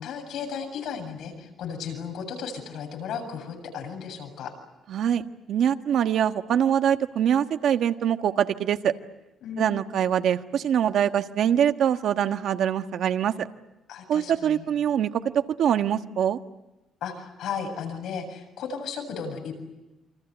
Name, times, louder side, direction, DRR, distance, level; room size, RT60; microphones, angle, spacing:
voice 1, 0.0-4.5 9.4-10.0 13.9-14.7 17.0-19.5, left 6 dB, 75° left, 5 dB, 7.6 m, -35 dB
voice 2, 4.9-8.9 9.6-13.5 14.1-15.1 15.3-16.4, right 9 dB, 65° right, 7 dB, 1.4 m, -24 dB
28.5 x 25.5 x 8.1 m, 1.0 s
cardioid pair, 150°, 0 cm